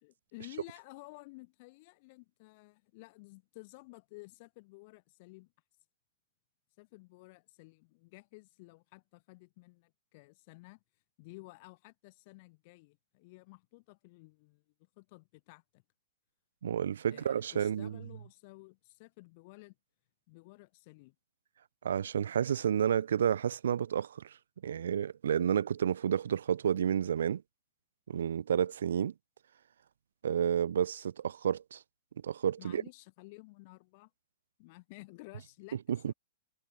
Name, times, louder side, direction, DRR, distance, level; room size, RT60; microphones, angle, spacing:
voice 1, 0.0-5.5 6.8-10.8 11.2-14.6 15.0-15.8 17.1-19.8 20.3-21.1 32.6-34.1 34.6-35.8 36.1-36.2, left 25 dB, 50° left, 4.3 m, -53 dB
voice 2, 16.6-18.0 21.8-24.4 24.6-27.4 28.1-29.1 30.2-31.8 32.2-32.8 35.9-36.1, right 8 dB, 80° right, 0.7 m, -30 dB
hypercardioid pair, 130°, 0 cm